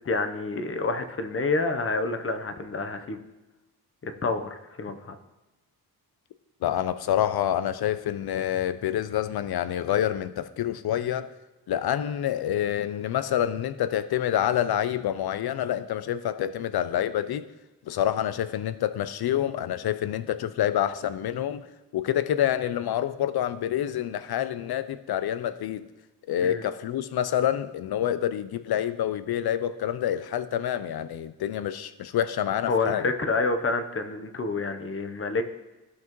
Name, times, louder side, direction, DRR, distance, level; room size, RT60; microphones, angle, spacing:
voice 1, 0.0-3.2 4.0-5.2 26.4-26.6 32.7-35.4, left 3 dB, 35° left, 8 dB, 0.8 m, -28 dB
voice 2, 6.6-11.3 11.7-17.5 17.9-21.6 21.9-25.9 26.3-33.1, left 11 dB, 80° left, 13 dB, 0.5 m, -27 dB
14.5 x 5.9 x 3.0 m, 1.1 s
wide cardioid pair, 120°, 37 cm